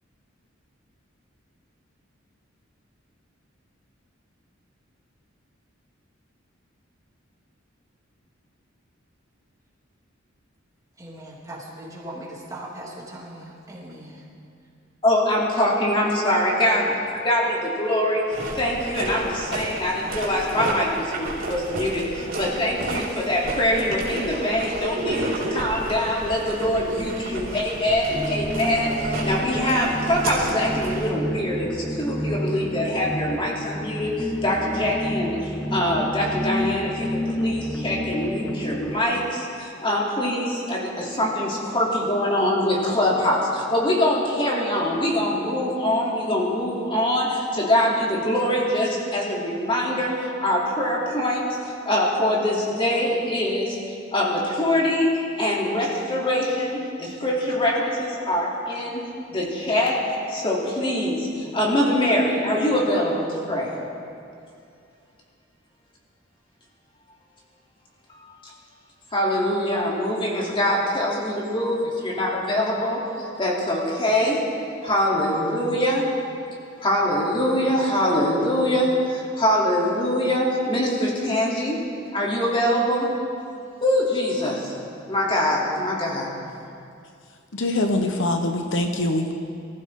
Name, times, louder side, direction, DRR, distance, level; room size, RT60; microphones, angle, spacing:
voice 1, 11.0-14.2, right 1 dB, 20° right, -5 dB, 3.0 m, -39 dB
voice 2, 15.0-16.8 17.2-18.3 18.5-37.1 37.4-51.4 51.8-53.8 54.1-59.0 59.3-63.8 68.1-68.2 69.1-73.0 73.4-74.4 74.8-76.0 76.8-81.8 82.1-83.1 83.8-84.7 85.1-86.3, left 1 dB, 25° left, -4 dB, 3.1 m, -23 dB
sound 1, 18.3-31.1, right 2 dB, 80° right, 3.5 m, -32 dB
sound 2, 28.1-39.0, equal, 10° left, 0.5 m, -30 dB
voice 3, 87.5-89.3, left 1 dB, 65° left, 5 dB, 1.0 m, -23 dB
24.0 x 15.0 x 3.8 m, 2.5 s
head